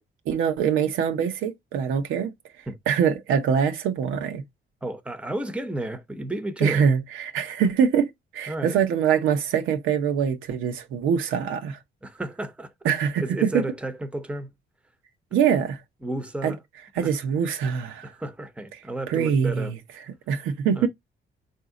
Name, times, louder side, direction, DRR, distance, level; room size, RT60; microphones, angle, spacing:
voice 1, 0.3-2.3 2.9-4.4 6.6-11.8 12.8-13.6 15.3-15.8 16.4-16.5 17.0-18.1 19.1-19.8 20.3-20.9, right 7 dB, 90° right, 0.9 m, -24 dB
voice 2, 4.8-6.9 8.5-8.8 12.0-12.9 13.2-14.5 16.0-16.6 17.0-17.1 18.0-19.7 20.8-20.9, right 1 dB, 5° right, 0.7 m, -32 dB
4.0 x 2.7 x 3.7 m
cardioid pair, 90°, 20 cm